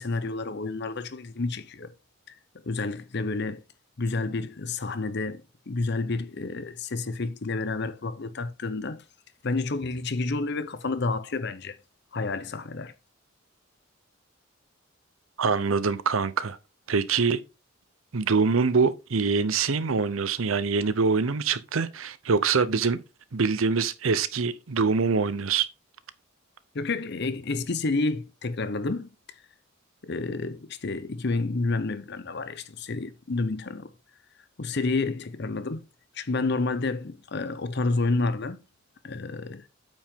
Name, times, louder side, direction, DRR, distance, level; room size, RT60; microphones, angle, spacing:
voice 1, 0.0-1.9 2.3-2.4 2.7-3.6 4.0-9.0 9.4-11.8 12.1-12.9 26.7-29.1 30.0-33.9 34.6-35.8 36.1-38.6 39.0-39.7, left 3 dB, 55° left, 0.7 m, -29 dB
voice 2, 15.4-16.6 16.9-17.4 18.1-23.0 23.3-25.7, right 5 dB, 85° right, 0.7 m, -24 dB
8.8 x 5.2 x 3.6 m
head